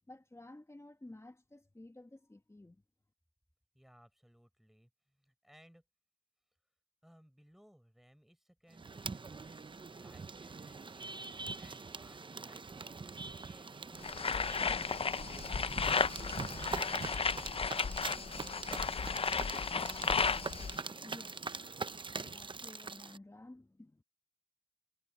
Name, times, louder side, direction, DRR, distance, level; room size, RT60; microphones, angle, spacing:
voice 1, 0.1-2.8 21.0-21.8 22.2-24.0, left 2 dB, 15° left, 1.9 m, -54 dB
voice 2, 3.7-5.8 7.0-11.2 11.6-17.9, equal, ahead, 6.9 m, -63 dB
sound 1, 8.7-23.2, right 4 dB, 30° right, 0.7 m, -43 dB
sound 2, 14.0-20.8, left 5 dB, 35° left, 0.5 m, -34 dB
cardioid pair, 80°, 17 cm